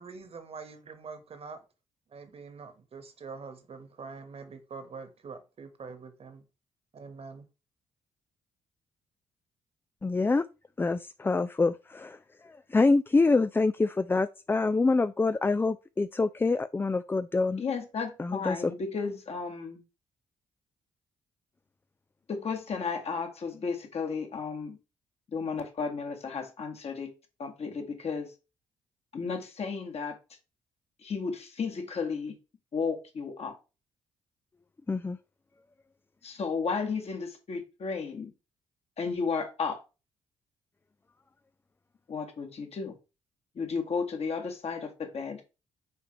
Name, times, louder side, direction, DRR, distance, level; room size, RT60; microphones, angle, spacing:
voice 1, 0.0-1.6 2.1-6.4 6.9-7.5, right 4 dB, 45° right, 1.5 m, -44 dB
voice 2, 10.0-10.4 10.8-17.6 18.2-18.7 34.9-35.2, left 3 dB, 15° left, 0.4 m, -26 dB
voice 3, 17.6-19.8 22.3-24.8 25.3-27.1 27.4-28.3 29.1-30.2 31.0-32.4 32.7-33.6 36.2-38.3 39.0-39.8 42.1-43.0 43.6-45.4, left 5 dB, 50° left, 1.9 m, -33 dB
6.9 x 4.6 x 3.2 m
hypercardioid pair, 45°, 14 cm